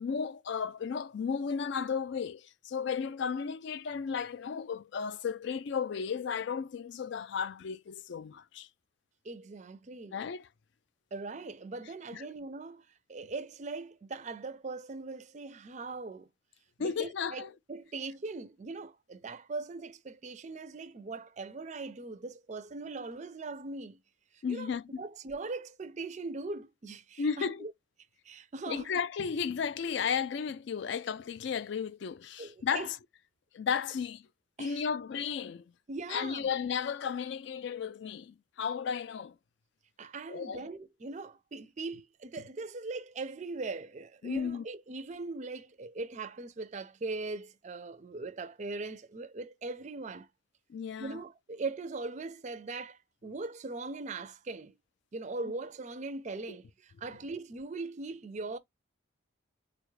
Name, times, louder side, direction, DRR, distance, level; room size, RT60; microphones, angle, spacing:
voice 1, 0.0-8.7 10.1-10.5 12.1-12.2 16.8-17.5 24.4-25.0 27.2-27.7 28.7-33.0 33.5-34.3 34.6-35.7 36.1-39.3 40.3-40.7 44.2-44.6 50.7-51.2 56.5-56.6, left 6 dB, 55° left, 0.3 m, -34 dB
voice 2, 9.2-10.2 11.1-16.3 16.8-24.0 24.3-27.7 28.2-28.9 32.4-32.9 34.6-34.8 35.9-36.5 40.0-50.3 51.0-54.8 55.1-58.6, right 3 dB, 35° right, 0.4 m, -40 dB
4.0 x 2.3 x 3.1 m
head